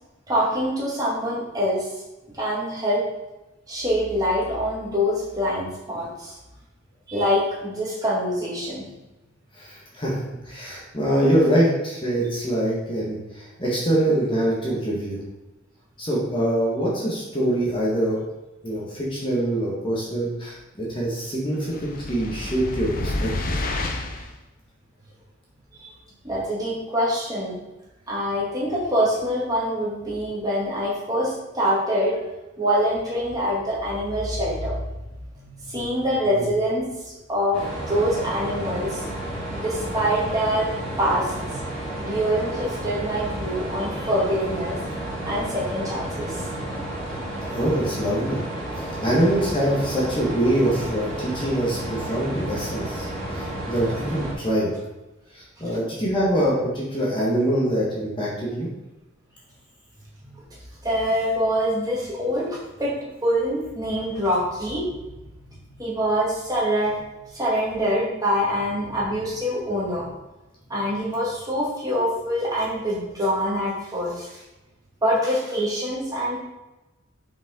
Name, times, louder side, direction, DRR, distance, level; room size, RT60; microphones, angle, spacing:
voice 1, 0.3-1.9 2.4-3.1 3.7-6.4 7.1-8.9 25.8-25.9 26.2-27.6 28.1-32.2 32.6-34.7 35.4-39.0 39.6-40.7 41.0-41.6 42.0-44.8 45.2-46.7 60.2-60.3 60.8-62.9 63.2-64.9 65.8-67.0 67.3-70.1 70.7-74.4 75.0-76.4, equal, 20° right, -6 dB, 2.2 m, -25 dB
voice 2, 9.6-10.2 10.5-15.2 16.0-18.2 18.6-23.6 47.5-48.4 48.8-54.7 55.3-58.7, right 1 dB, 25° left, -6 dB, 1.7 m, -24 dB
sound 1, 21.7-24.3, left 2 dB, 45° left, 0.7 m, -29 dB
sound 2, 37.5-54.3, right 1 dB, 5° left, 2.3 m, -31 dB
6.5 x 5.7 x 3.8 m, 1.0 s
head